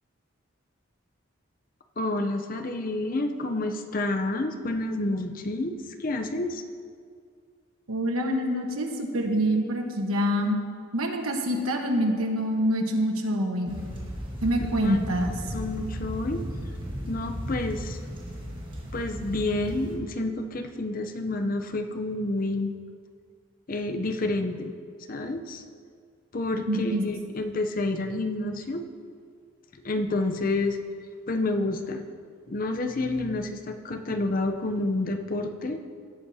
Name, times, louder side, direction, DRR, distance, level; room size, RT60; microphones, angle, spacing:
voice 1, 2.0-6.6 14.8-15.0 15.5-16.4 17.1-18.0 18.9-22.7 23.7-24.7 25.1-25.6 26.3-28.9 29.7-30.8 31.3-32.0 32.5-35.8, left 2 dB, 40° left, 6 dB, 0.6 m, -29 dB
voice 2, 7.9-10.6 10.9-13.8 14.4-15.3 26.7-27.1, equal, 90° right, 3 dB, 1.2 m, -26 dB
sound 1, 13.7-20.0, equal, 25° right, 1.5 m, -35 dB
17.5 x 8.5 x 2.8 m, 2.2 s
head